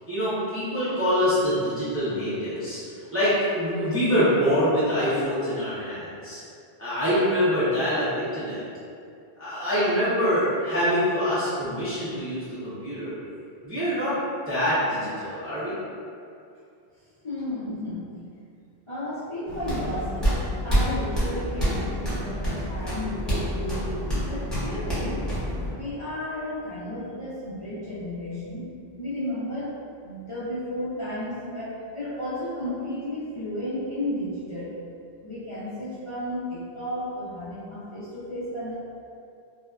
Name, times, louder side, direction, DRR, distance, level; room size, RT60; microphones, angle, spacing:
voice 1, 0.1-6.4 6.8-8.6 9.4-13.1 13.6-14.2 14.5-15.8, equal, 20° right, -12 dB, 0.4 m, -25 dB
voice 2, 17.2-18.1 18.9-25.3 25.7-28.6 29.0-29.8 30.0-34.8 35.2-38.8, left 1 dB, 40° left, -13 dB, 0.5 m, -33 dB
sound 1, 19.5-25.7, equal, ahead, 0.8 m, -27 dB
2.7 x 2.1 x 2.3 m, 2.5 s
omnidirectional pair, 1.1 m